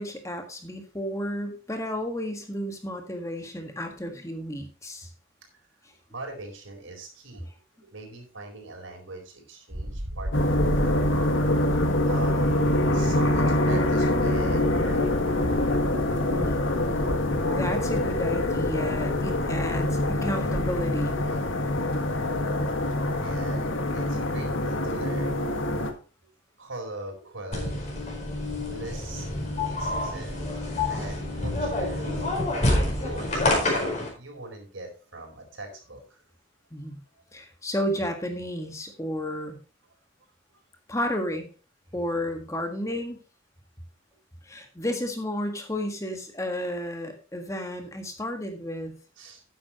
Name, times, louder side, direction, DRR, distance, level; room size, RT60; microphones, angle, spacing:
voice 1, 0.0-5.1 16.3-16.6 17.5-21.2 36.7-37.0 37.3-39.6 40.9-41.5 41.9-43.2 44.4-49.0, equal, 15° left, 4 dB, 1.6 m, -32 dB
voice 2, 6.1-7.5 7.8-11.6 11.9-15.4 22.8-25.5 26.6-28.0 28.4-30.5 30.9-32.7 33.0-36.2 49.2-49.4, right 2 dB, 85° right, 3 dB, 4.3 m, -41 dB
sound 1, 9.7-21.2, equal, 65° right, 2.4 m, -35 dB
sound 2, 10.3-25.9, left 1 dB, 80° left, 1.8 m, -25 dB
sound 3, 27.5-34.1, left 2 dB, 35° left, 4.6 m, -27 dB
12.5 x 9.8 x 3.0 m, 0.34 s
head